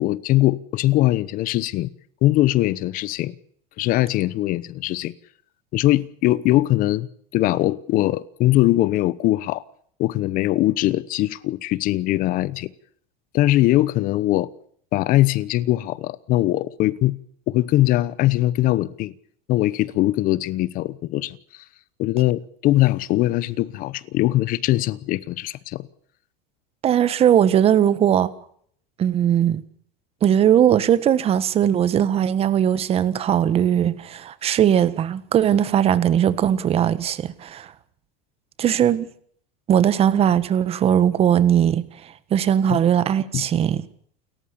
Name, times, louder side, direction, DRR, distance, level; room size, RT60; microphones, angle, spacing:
voice 1, 0.0-1.9 2.2-3.3 3.8-5.1 5.7-7.1 7.3-9.6 10.0-12.7 13.3-14.5 14.9-17.1 17.5-19.1 19.5-21.4 22.0-25.8 42.7-42.8 43.3-43.5, left 16 dB, 40° left, 1.0 m, -21 dB
voice 2, 26.8-28.3 29.0-29.6 30.2-37.7 38.6-39.1 39.7-41.9 42.3-43.8, right 9 dB, 30° right, 1.5 m, -19 dB
29.5 x 14.5 x 7.0 m
supercardioid pair, 145°, 21 cm